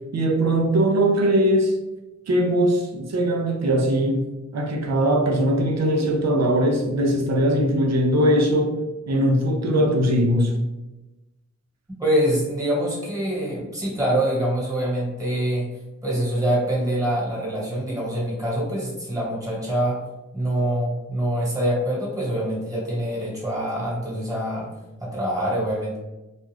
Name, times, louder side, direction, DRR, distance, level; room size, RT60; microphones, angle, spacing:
voice 1, 0.1-1.8 2.3-4.3 4.5-8.8 9.1-10.6, right 1 dB, 60° right, 0.5 m, -20 dB
voice 2, 12.0-20.0 20.3-24.7 25.0-26.0, right 1 dB, 10° right, 1.4 m, -25 dB
2.4 x 2.3 x 3.2 m
cardioid pair, 60°, 29 cm